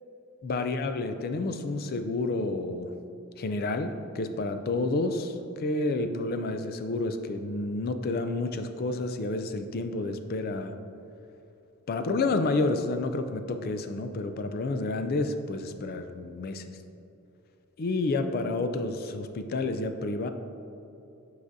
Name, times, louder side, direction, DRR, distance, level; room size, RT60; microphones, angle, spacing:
voice 1, 0.4-3.0 3.4-10.7 11.9-16.8 17.8-20.3, left 2 dB, 45° left, 8 dB, 0.3 m, -30 dB
8.4 x 4.8 x 2.6 m, 2.9 s
head